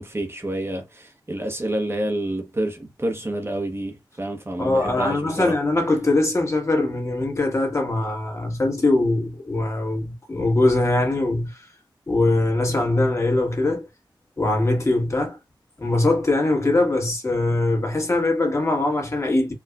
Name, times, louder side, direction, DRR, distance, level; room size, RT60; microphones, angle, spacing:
voice 1, 0.0-5.6, right 1 dB, 30° right, 0.9 m, -28 dB
voice 2, 4.6-11.7 12.1-13.8 14.4-15.4 15.8-19.5, left 2 dB, 35° left, 1.5 m, -22 dB
4.5 x 2.4 x 2.3 m
wide cardioid pair, 60°, 8 cm